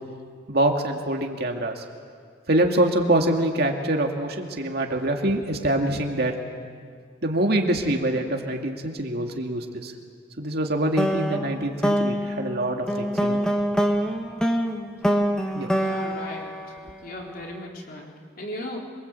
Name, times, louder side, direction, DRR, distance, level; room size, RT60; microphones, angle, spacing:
voice 1, 0.5-1.8 2.5-6.3 7.2-9.9 10.4-13.4 15.5-15.7, right 1 dB, 55° right, 2 dB, 2.5 m, -25 dB
sound 1, 11.0-17.4, equal, 5° left, 1.6 m, -25 dB
voice 2, 15.7-16.5 17.0-18.8, left 1 dB, 50° left, -1 dB, 3.9 m, -36 dB
27.0 x 24.0 x 8.4 m, 2.1 s
head